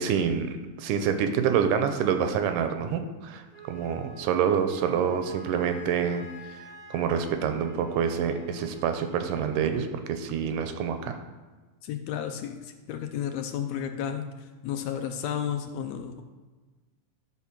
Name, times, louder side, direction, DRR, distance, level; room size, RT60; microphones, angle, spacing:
voice 1, 0.0-6.3 6.9-11.2, right 7 dB, 90° right, 7 dB, 2.2 m, -27 dB
Wind instrument woodwind instrument, 3.5-9.8, right 4 dB, 5° right, 1.3 m, -46 dB
voice 2, 11.8-14.3 14.6-16.2, left 9 dB, 80° left, 5 dB, 1.6 m, -32 dB
11.0 x 3.6 x 5.9 m, 1.3 s
omnidirectional pair, 3.6 m